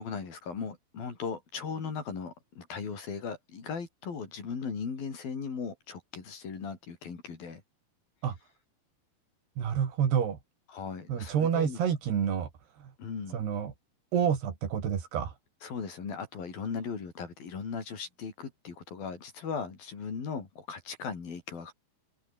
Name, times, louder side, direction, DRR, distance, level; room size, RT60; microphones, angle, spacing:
voice 1, 0.0-7.6 10.7-11.8 13.0-13.4 15.6-21.7, left 5 dB, 60° left, 6.3 m, -38 dB
voice 2, 9.6-10.4 11.1-12.5 12.8-12.9 13.3-13.7 14.1-15.3, right 8 dB, 75° right, 5.2 m, -28 dB
omnidirectional pair, 4.7 m